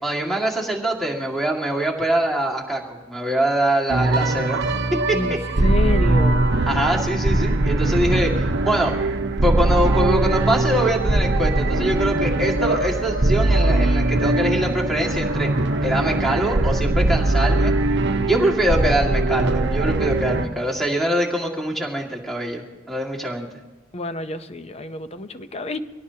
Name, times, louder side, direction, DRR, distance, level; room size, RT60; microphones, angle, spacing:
voice 1, 0.0-4.6 4.9-5.2 6.7-8.9 9.4-15.5 15.8-17.7 18.3-23.5, right 1 dB, ahead, 0 dB, 2.0 m, -23 dB
sound 1, 3.9-20.5, right 2 dB, 60° right, 0.9 m, -21 dB
voice 2, 5.1-6.5 23.9-25.8, left 2 dB, 30° left, 10 dB, 0.7 m, -29 dB
24.0 x 17.5 x 2.9 m, 1.2 s
head